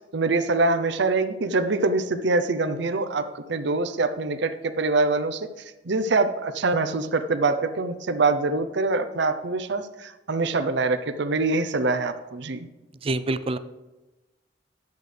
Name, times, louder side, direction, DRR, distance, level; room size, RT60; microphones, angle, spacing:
voice 1, 0.0-5.5 5.8-12.7, right 3 dB, 65° right, 9 dB, 0.7 m, -24 dB
voice 2, 13.0-13.6, right 2 dB, 30° right, 13 dB, 0.5 m, -26 dB
11.0 x 8.1 x 3.4 m, 1.1 s
head